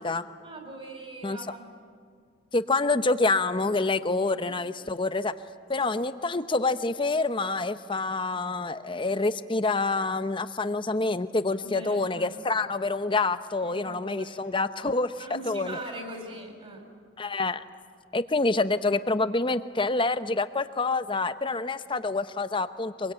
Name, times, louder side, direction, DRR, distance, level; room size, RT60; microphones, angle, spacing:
voice 1, 0.4-1.6 4.4-4.5 5.7-5.8 11.6-12.4 13.6-14.4 15.2-16.9, right 1 dB, 30° right, 3 dB, 4.6 m, -41 dB
voice 2, 2.5-5.3 5.7-15.8 17.2-17.6 18.1-23.1, left 3 dB, 25° left, 12 dB, 0.7 m, -27 dB
24.5 x 23.0 x 9.0 m, 2.1 s
head